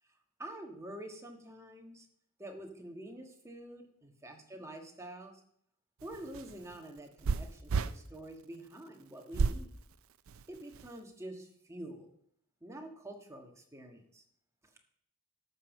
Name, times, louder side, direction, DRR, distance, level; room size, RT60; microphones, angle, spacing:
voice 1, 0.4-2.0 2.4-5.4 6.0-9.7 10.5-12.1 12.6-14.2, right 1 dB, 15° right, 3 dB, 1.4 m, -47 dB
sound 1, 6.0-8.0 9.3-9.6 10.3-10.9, right 4 dB, 65° right, 0.5 m, -32 dB
12.5 x 5.6 x 7.2 m, 0.67 s
head